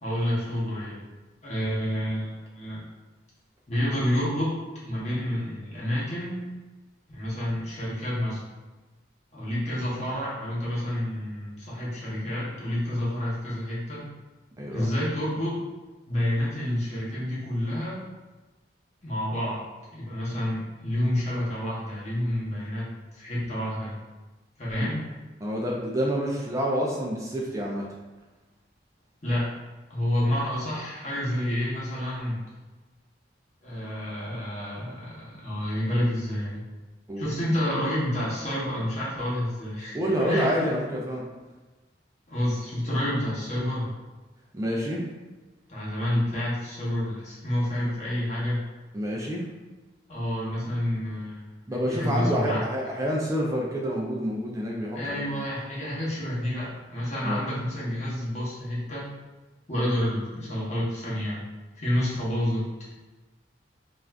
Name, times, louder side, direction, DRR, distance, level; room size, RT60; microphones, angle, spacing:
voice 1, 0.0-1.0 1.4-2.8 3.7-4.6 4.9-6.5 7.1-8.4 9.3-14.1 14.7-15.7 16.1-18.0 19.0-23.9 24.6-25.1 29.2-29.5 29.9-32.4 33.6-36.6 37.2-40.7 42.3-43.9 45.7-48.6 50.1-51.4 51.9-52.6 54.9-59.1 59.7-61.4 61.8-62.9, left 1 dB, 35° left, -7 dB, 0.9 m, -29 dB
voice 2, 14.6-14.9 25.4-27.8 37.1-37.3 39.9-41.2 44.5-45.0 48.9-49.4 51.7-55.4 57.2-57.4, equal, 15° right, -3 dB, 0.3 m, -28 dB
2.4 x 2.4 x 3.3 m, 1.2 s
head